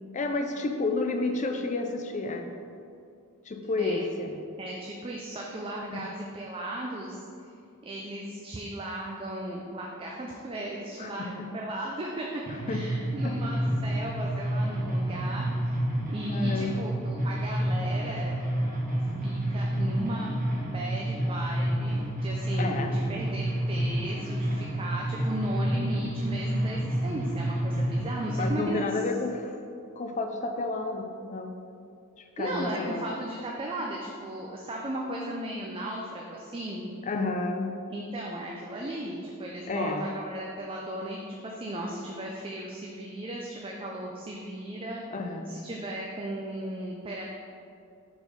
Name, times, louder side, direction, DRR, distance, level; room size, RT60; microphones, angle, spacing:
voice 1, 0.1-2.5 3.4-4.4 5.9-6.0 11.0-11.5 12.7-12.8 13.2-13.3 16.3-16.7 22.5-23.0 28.4-29.6 30.0-31.6 32.2-33.1 37.0-37.8 39.7-40.1 45.1-45.7, left 3 dB, 35° left, 4 dB, 0.4 m, -31 dB
voice 2, 4.6-7.5 7.8-15.7 16.1-18.4 19.2-29.0 32.4-36.9 37.9-45.0 45.5-47.2, right 1 dB, 25° right, -2 dB, 0.5 m, -36 dB
sound 1, 12.5-28.5, right 1 dB, 40° right, 1.0 m, -29 dB
4.8 x 4.3 x 5.1 m, 2.4 s
head